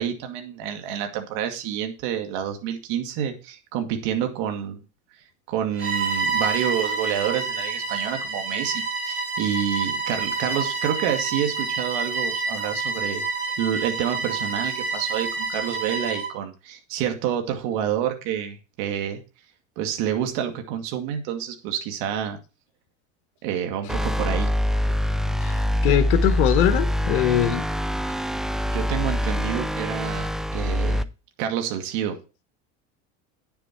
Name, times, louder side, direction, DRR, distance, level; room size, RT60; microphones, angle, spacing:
voice 1, 0.0-4.8 5.5-13.2 13.6-19.2 19.8-22.4 23.4-24.5 28.7-31.1 31.4-32.2, right 9 dB, 70° right, 2.3 m, -28 dB
Bowed string instrument, 5.7-16.4, right 4 dB, 40° right, 5.4 m, -28 dB
sound 1, 23.9-31.0, equal, ahead, 0.4 m, -24 dB
voice 2, 25.8-27.6, left 11 dB, 90° left, 1.2 m, -21 dB
10.0 x 7.0 x 4.5 m
supercardioid pair, 120°, 33 cm